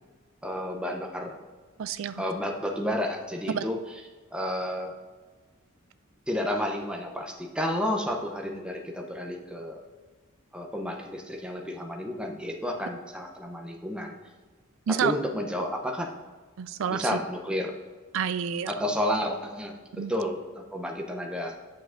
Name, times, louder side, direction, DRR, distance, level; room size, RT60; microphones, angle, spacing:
voice 1, 0.4-1.4 2.2-3.8 4.3-4.9 6.3-9.8 10.5-14.1 15.0-16.1 16.9-17.7 18.7-21.6, left 1 dB, 5° right, 2 dB, 0.5 m, -31 dB
voice 2, 1.8-2.2 3.5-3.7 14.9-15.1 16.6-17.1 18.1-18.7 19.9-20.1, right 7 dB, 65° right, 12 dB, 0.3 m, -29 dB
8.7 x 7.1 x 2.5 m, 1.4 s
head